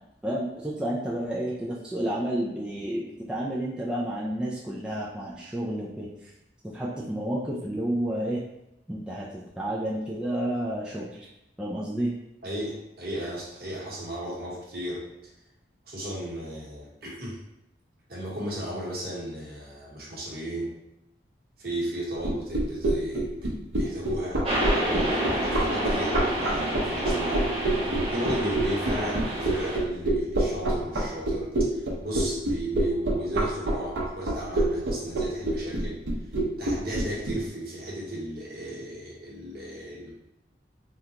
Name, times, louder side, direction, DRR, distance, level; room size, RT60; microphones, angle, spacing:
voice 1, 0.2-6.3 6.6-8.4 8.9-11.3 11.6-12.1, right 1 dB, 5° right, -6 dB, 0.3 m, -30 dB
voice 2, 12.4-15.1 15.9-17.4 18.1-20.7 21.6-23.5 23.7-27.5 28.1-36.0 36.6-40.1, right 1 dB, 55° right, -6 dB, 1.1 m, -35 dB
sound 1, 22.2-37.3, right 2 dB, 85° right, 0.7 m, -25 dB
sound 2, 24.4-29.8, right 1 dB, 30° right, 1.0 m, -29 dB
3.7 x 2.2 x 2.8 m, 0.87 s
head